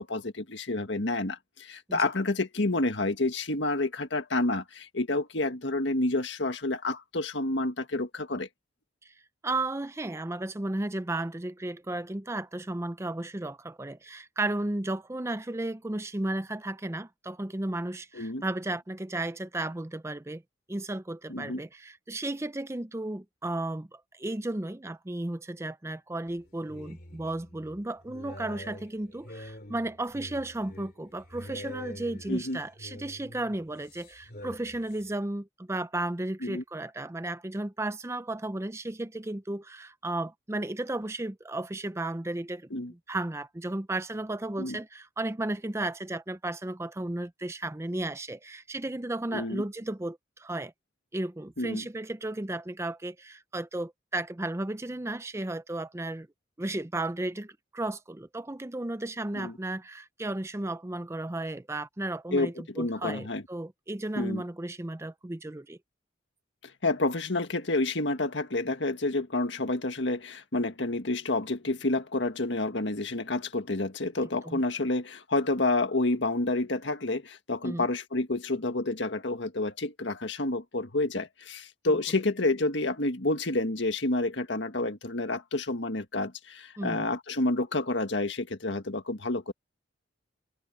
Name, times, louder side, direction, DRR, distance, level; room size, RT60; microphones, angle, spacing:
voice 1, 0.0-8.5 18.1-18.4 21.3-21.6 32.3-32.6 36.4-36.6 42.7-42.9 44.6-44.8 49.3-49.6 51.6-51.9 59.3-59.5 62.3-63.4 64.2-64.4 66.6-89.5, left 2 dB, 70° left, 1.8 m, -29 dB
voice 2, 9.4-20.4 20.7-50.7 51.1-56.3 56.6-65.8 74.4-74.6 77.6-77.9 81.9-82.0 86.8-87.0, right 2 dB, 15° right, 0.5 m, -34 dB
sound 1, 26.3-35.1, left 1 dB, 50° left, 3.0 m, -46 dB
open air
head